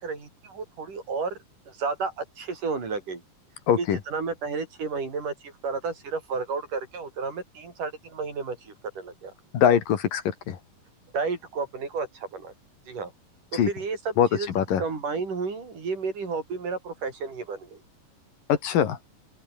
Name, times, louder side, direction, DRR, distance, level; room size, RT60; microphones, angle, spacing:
voice 1, 0.0-1.4 1.7-3.2 3.8-9.3 11.1-12.5 12.9-13.1 13.5-14.5 14.8-17.8, right 4 dB, 60° right, 6.8 m, -32 dB
voice 2, 3.7-4.0 9.5-10.6 13.5-13.7 14.2-14.3 14.6-14.8 18.5-19.0, left 9 dB, 70° left, 3.7 m, -22 dB
open air
omnidirectional pair, 4.2 m